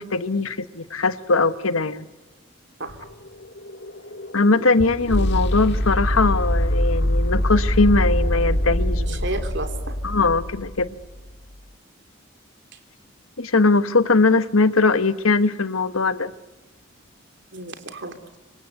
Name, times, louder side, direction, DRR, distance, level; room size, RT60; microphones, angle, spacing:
voice 1, 0.0-2.1 4.3-9.2 10.0-10.9 13.4-16.3, left 3 dB, 80° left, 12 dB, 1.3 m, -20 dB
sound 1, 2.9-11.0, equal, 55° left, 2.1 m, -24 dB
voice 2, 9.0-10.0 12.7-12.8 17.5-18.4, right 2 dB, 55° right, 6 dB, 3.1 m, -33 dB
26.5 x 25.5 x 8.2 m, 1.2 s
head